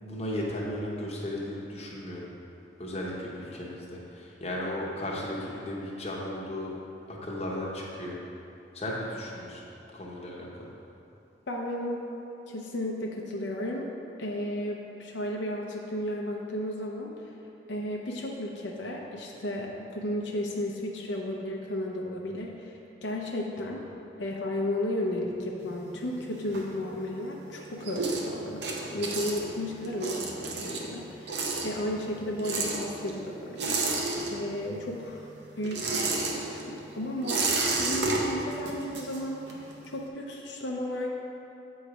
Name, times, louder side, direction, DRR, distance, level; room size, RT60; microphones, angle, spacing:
voice 1, 0.0-2.3 2.8-6.7 7.1-8.2 8.7-9.6 9.9-10.7, left 1 dB, 35° left, -4 dB, 0.8 m, -35 dB
voice 2, 11.5-12.1 12.5-13.9 14.2-17.3 17.7-23.8 24.2-35.3 35.6-41.1, left 1 dB, 80° left, -1 dB, 0.6 m, -34 dB
sound 1, 25.6-27.2 27.5-34.8 35.0-39.7, right 3 dB, 65° right, 0.7 m, -32 dB
8.0 x 3.1 x 4.8 m, 2.8 s
head